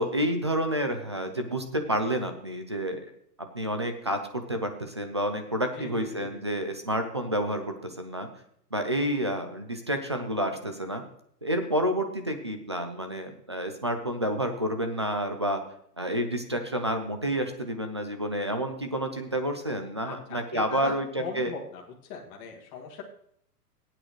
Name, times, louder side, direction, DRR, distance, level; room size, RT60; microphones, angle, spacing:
voice 1, 0.0-3.1 3.4-8.3 8.7-11.0 11.4-15.6 16.0-21.5, equal, 20° right, 6 dB, 0.3 m, -29 dB
voice 2, 5.7-6.6 20.0-20.9 21.2-23.0, left 5 dB, 30° left, -2 dB, 1.9 m, -40 dB
18.0 x 8.8 x 3.0 m, 0.68 s
hypercardioid pair, 150°, 48 cm